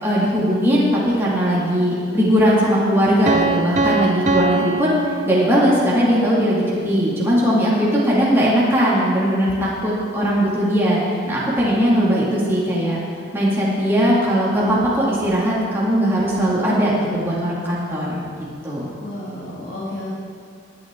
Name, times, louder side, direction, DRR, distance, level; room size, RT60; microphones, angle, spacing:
voice 1, 0.0-4.9 5.3-13.0 13.3-18.2 18.6-18.9, equal, 10° right, -7 dB, 2.3 m, -19 dB
Piano, 3.3-6.0, right 3 dB, 35° right, 0.6 m, -22 dB
voice 2, 19.0-20.1, left 1 dB, 60° left, -8 dB, 2.4 m, -32 dB
20.5 x 9.3 x 3.8 m, 2.4 s
head